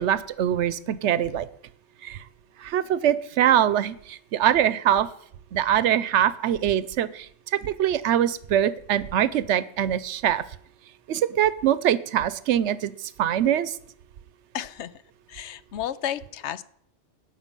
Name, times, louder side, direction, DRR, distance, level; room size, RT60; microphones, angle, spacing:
voice 1, 0.0-1.5 2.0-2.2 2.6-5.1 5.5-10.4 11.1-13.8, right 10 dB, 85° right, 17 dB, 0.9 m, -23 dB
voice 2, 14.5-14.9 15.3-16.6, left 10 dB, 80° left, 16 dB, 0.9 m, -32 dB
17.0 x 6.1 x 5.3 m, 0.68 s
omnidirectional pair, 1.2 m